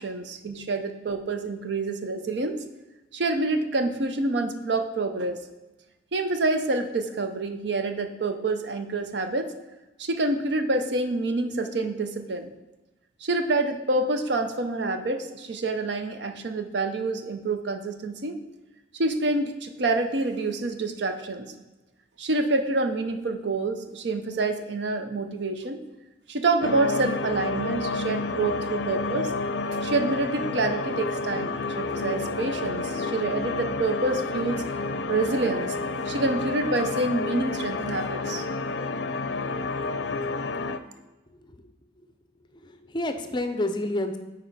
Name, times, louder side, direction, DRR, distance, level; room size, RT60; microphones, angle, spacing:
voice 1, 0.0-2.6 3.1-5.4 6.1-9.5 10.0-12.5 13.2-18.4 19.0-21.5 22.2-25.8 26.3-29.3 29.8-34.7 35.1-35.7 36.1-38.4, right 2 dB, 75° right, 7 dB, 0.6 m, -27 dB
sound 1, 26.6-40.8, left 3 dB, 80° left, 0.4 m, -30 dB
voice 2, 42.5-44.2, left 1 dB, 25° left, 7 dB, 0.5 m, -29 dB
9.3 x 4.2 x 4.1 m, 1.1 s
head